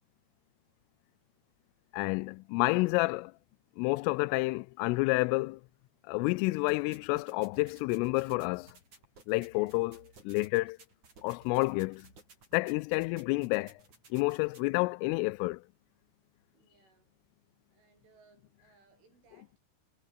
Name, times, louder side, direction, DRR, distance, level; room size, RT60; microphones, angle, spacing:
voice 1, 1.9-3.3 3.8-5.6 6.1-8.7 9.3-10.8 11.2-12.1 12.5-13.7 14.1-15.6, left 24 dB, 90° left, 3.2 m, -29 dB
sound 1, 6.7-14.7, right 4 dB, 40° right, 7.7 m, -58 dB
voice 2, 16.5-17.3 17.7-19.6, right 4 dB, 75° right, 10.5 m, -65 dB
omnidirectional pair, 5.7 m